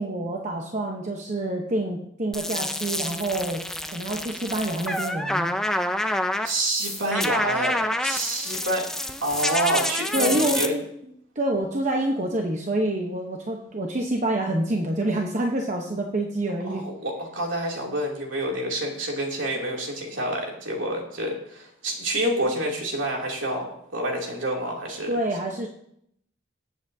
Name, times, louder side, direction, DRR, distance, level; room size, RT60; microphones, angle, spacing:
voice 1, 0.0-3.6 3.9-5.5 10.1-10.8 11.4-16.8 25.1-25.7, right 1 dB, 35° right, 1 dB, 0.9 m, -27 dB
sound 1, 2.3-10.7, left 1 dB, 5° left, 0.5 m, -28 dB
voice 2, 6.4-8.9 9.2-10.7 16.7-25.2, right 1 dB, 70° right, -1 dB, 2.8 m, -28 dB
20.0 x 8.0 x 2.7 m, 0.73 s
head